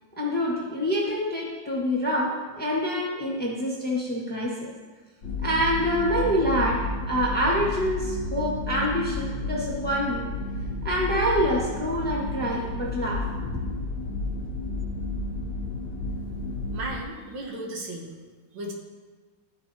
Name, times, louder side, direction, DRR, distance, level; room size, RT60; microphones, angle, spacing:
voice 1, 0.2-4.7 5.4-6.8 7.0-10.3 10.8-13.6, equal, 5° left, -4 dB, 1.2 m, -26 dB
sound 1, 5.2-17.0, left 2 dB, 70° left, 1.5 m, -32 dB
voice 2, 16.7-18.2 18.5-18.7, right 1 dB, 75° right, 0 dB, 1.8 m, -35 dB
13.0 x 4.5 x 2.8 m, 1.4 s
omnidirectional pair, 2.0 m